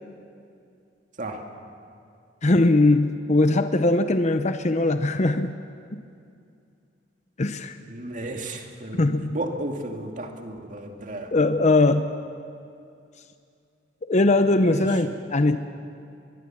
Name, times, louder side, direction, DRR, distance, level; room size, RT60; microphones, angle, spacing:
voice 1, 2.4-5.6 5.9-6.0 7.4-7.7 8.9-9.4 11.3-12.1 14.1-15.6, left 2 dB, 40° left, 9 dB, 0.8 m, -20 dB
voice 2, 7.8-11.3 14.6-14.8, right 1 dB, 45° right, 3 dB, 2.2 m, -34 dB
23.0 x 22.0 x 7.4 m, 2.5 s
head